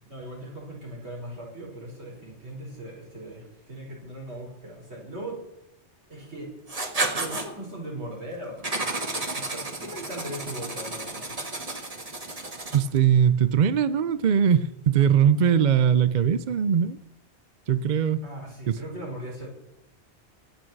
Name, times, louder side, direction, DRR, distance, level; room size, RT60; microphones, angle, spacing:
voice 1, 0.0-5.4 6.1-6.5 7.1-8.8 9.3-11.3 18.2-19.5, right 1 dB, 70° right, -4 dB, 5.8 m, -39 dB
Writing, 6.7-7.5 8.6-13.0, right 2 dB, 35° right, 1.7 m, -32 dB
voice 2, 12.7-17.0 17.7-18.2 18.7-18.8, right 8 dB, 50° right, 14 dB, 0.6 m, -21 dB
24.0 x 8.8 x 4.6 m, 0.80 s
omnidirectional pair, 1.2 m